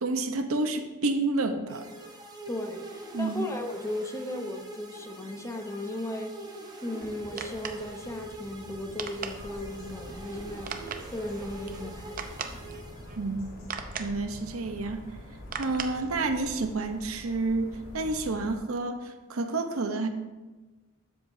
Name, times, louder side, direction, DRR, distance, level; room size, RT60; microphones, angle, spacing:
voice 1, 0.0-1.9 3.1-3.4 13.2-13.6 14.0-15.0 15.6-20.1, right 3 dB, 80° right, 7 dB, 0.8 m, -29 dB
sound 1, 1.7-13.5, right 2 dB, 20° right, 1.0 m, -44 dB
voice 2, 2.5-6.3 6.8-12.6, left 1 dB, 15° left, 4 dB, 0.8 m, -36 dB
sound 2, 7.0-16.6, right 5 dB, 40° right, 0.6 m, -42 dB
sound 3, 9.2-18.6, left 1 dB, 90° left, 2.1 m, -46 dB
12.5 x 7.8 x 2.7 m, 1.2 s
head